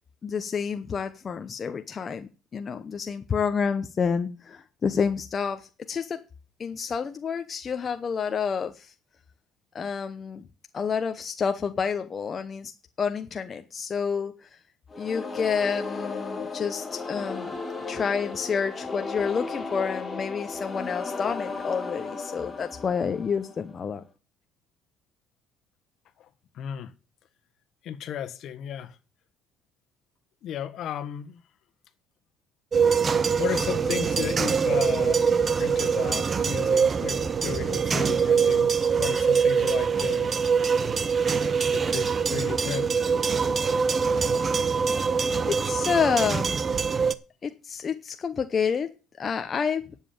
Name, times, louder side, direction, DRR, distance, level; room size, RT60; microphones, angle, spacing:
voice 1, 0.2-6.2 6.6-8.9 9.7-10.5 10.7-12.7 13.0-14.5 15.0-17.6 17.9-24.0 45.5-46.6 47.4-48.9 49.2-49.8, left 6 dB, 35° left, 0.8 m, -29 dB
sound 1, 14.9-23.8, left 4 dB, 15° left, 2.8 m, -35 dB
voice 2, 26.5-26.9 27.8-29.0 30.4-31.4 33.4-38.7 39.0-40.3 41.7-42.9, left 10 dB, 60° left, 1.4 m, -34 dB
sound 2, 32.7-47.1, right 6 dB, 30° right, 0.7 m, -24 dB
11.0 x 7.3 x 7.1 m
cardioid pair, 120°, 0 cm